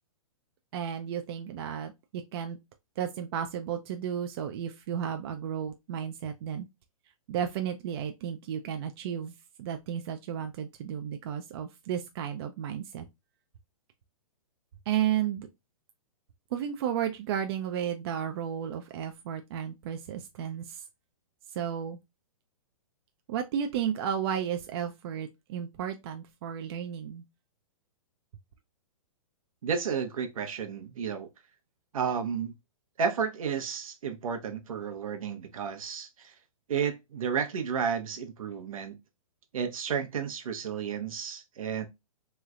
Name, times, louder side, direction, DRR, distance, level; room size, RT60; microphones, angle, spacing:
voice 1, 0.7-2.6 3.0-6.7 7.3-13.1 14.9-15.5 16.5-20.8 21.5-22.0 23.3-27.2, right 9 dB, 45° right, 0.5 m, -33 dB
voice 2, 29.6-31.3 31.9-32.5 33.0-36.3 36.7-39.0 39.5-41.9, right 6 dB, 75° right, 0.9 m, -32 dB
3.2 x 3.0 x 2.3 m
hypercardioid pair, 140°, 18 cm